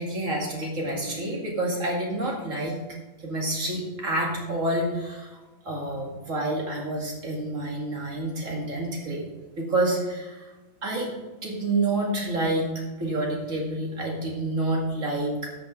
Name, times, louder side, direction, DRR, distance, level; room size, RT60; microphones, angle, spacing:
voice 1, 0.0-2.8 3.2-5.3 5.6-9.2 9.6-10.5 10.8-11.1 11.4-12.7 13.0-15.5, right 2 dB, 70° right, -1 dB, 2.7 m, -28 dB
13.5 x 7.8 x 3.9 m, 1.2 s
omnidirectional pair, 1.4 m